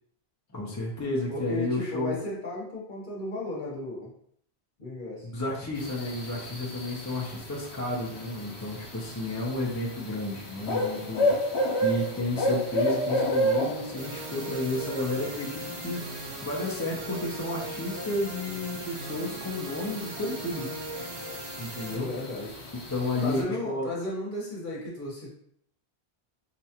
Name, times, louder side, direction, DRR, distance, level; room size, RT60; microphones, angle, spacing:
voice 1, 0.5-2.2 5.3-11.3 11.8-20.7 21.6-22.1 22.9-23.9, left 1 dB, 20° left, -4 dB, 0.5 m, -32 dB
voice 2, 1.3-4.1 4.8-5.3 21.9-22.5 23.2-25.3, left 2 dB, 50° left, -4 dB, 1.2 m, -34 dB
sound 1, 5.7-23.4, equal, 80° left, 1.1 m, -33 dB
sound 2, 14.0-22.0, right 2 dB, 75° right, 1.1 m, -39 dB
4.8 x 2.3 x 2.8 m, 0.68 s
omnidirectional pair, 1.1 m